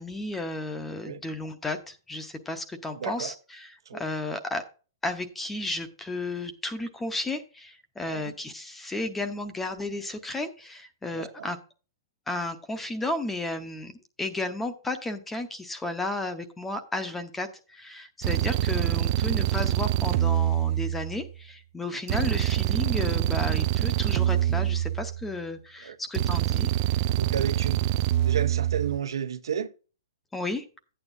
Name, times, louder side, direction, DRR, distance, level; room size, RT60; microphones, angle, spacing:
voice 1, 0.0-4.6 5.0-11.6 12.3-13.9 14.2-26.7 30.3-30.6, left 2 dB, 5° left, 0.7 m, -33 dB
voice 2, 3.0-3.3 3.9-4.0 8.0-8.3 11.1-11.5 21.9-22.0 25.8-26.0 27.2-27.9 28.2-29.7, right 8 dB, 80° right, 1.1 m, -32 dB
sound 1, 18.2-21.3 22.1-25.4 26.1-29.0, right 13 dB, 30° right, 0.3 m, -25 dB
11.0 x 9.0 x 2.6 m
hypercardioid pair, 170°, 2 cm